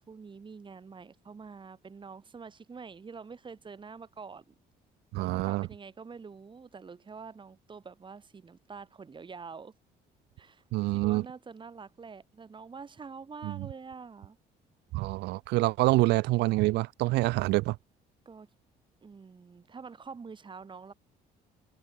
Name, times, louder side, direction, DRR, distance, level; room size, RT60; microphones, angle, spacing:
voice 1, 0.0-4.5 5.1-9.7 10.4-10.6 10.9-14.4 18.3-18.5 19.0-20.9, right 5 dB, 30° right, 4.1 m, -46 dB
voice 2, 5.1-5.7 10.7-11.3 13.4-13.7 14.9-17.8, right 20 dB, 85° right, 1.3 m, -26 dB
cardioid pair, 110°, 17 cm